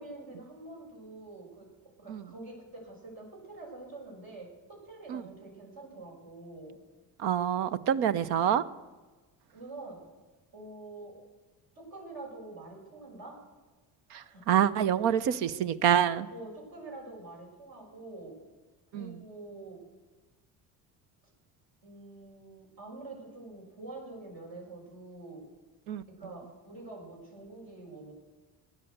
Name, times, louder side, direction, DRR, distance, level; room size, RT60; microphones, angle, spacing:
voice 1, 0.0-1.7 2.0-4.5 4.8-6.8 9.5-10.0 10.5-11.2 11.8-13.4 14.1-14.5 16.3-18.3 18.9-19.8 21.8-25.4 26.2-28.1, right 2 dB, 65° right, -2 dB, 6.9 m, -46 dB
voice 2, 7.2-8.6 14.1-16.3 18.9-19.2 25.9-26.0, right 9 dB, 80° right, 16 dB, 0.9 m, -27 dB
16.0 x 10.5 x 8.1 m, 1.3 s
supercardioid pair, 85°, 39 cm